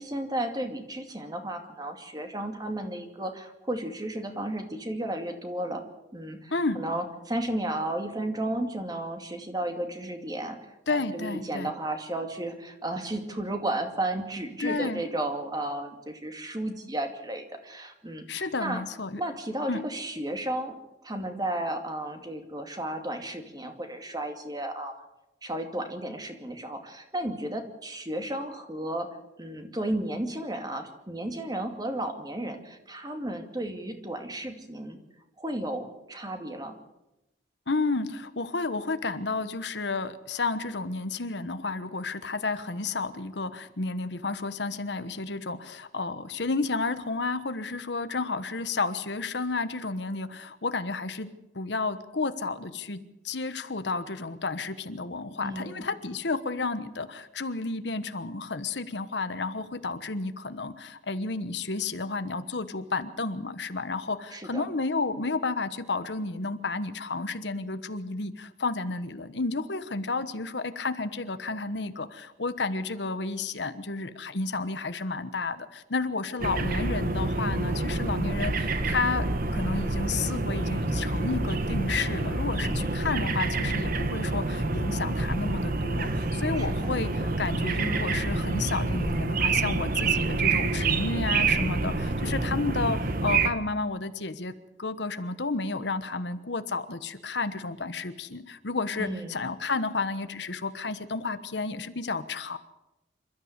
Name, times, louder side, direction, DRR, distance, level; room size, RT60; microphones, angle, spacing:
voice 1, 0.0-5.8 6.1-18.8 19.2-20.8 21.0-25.0 25.4-29.1 29.4-35.0 35.4-36.8 55.4-55.9 64.3-64.7 82.8-83.1 86.6-87.0 99.0-99.5, right 1 dB, 20° right, 5 dB, 2.4 m, -33 dB
voice 2, 6.5-6.8 10.9-11.7 14.6-15.0 18.3-19.2 19.7-19.8 37.7-51.3 51.5-79.2 79.5-94.5 94.8-102.6, left 3 dB, 70° left, 11 dB, 1.2 m, -31 dB
sound 1, 76.4-93.5, right 3 dB, 50° right, 1.4 m, -27 dB
27.0 x 13.5 x 8.1 m, 0.92 s
head